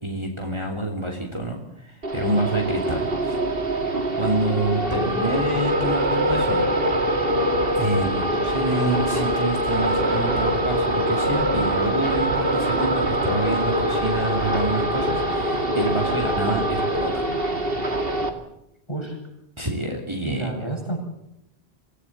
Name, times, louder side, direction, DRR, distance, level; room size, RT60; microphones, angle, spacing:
voice 1, 0.0-3.3 4.2-6.6 7.7-18.0 19.6-20.5, right 1 dB, 25° right, 2 dB, 3.0 m, -27 dB
sound 1, 2.0-18.3, right 1 dB, 60° right, 2.6 m, -23 dB
voice 2, 4.9-5.2 18.9-19.2 20.2-21.0, right 2 dB, 25° left, -1 dB, 8.0 m, -30 dB
25.5 x 17.0 x 7.4 m, 0.84 s
omnidirectional pair, 1.1 m